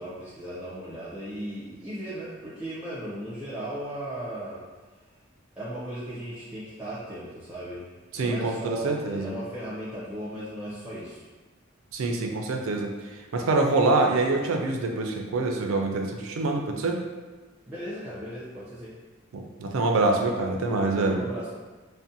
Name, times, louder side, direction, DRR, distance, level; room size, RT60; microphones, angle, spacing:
voice 1, 0.0-4.6 5.6-7.9 8.2-11.2 17.7-18.9 21.1-21.5, right 1 dB, 5° right, -10 dB, 0.5 m, -36 dB
voice 2, 8.1-9.3 11.9-12.9 13.3-17.0 19.3-21.2, right 3 dB, 80° right, 2 dB, 0.4 m, -25 dB
2.5 x 2.1 x 2.6 m, 1.4 s
head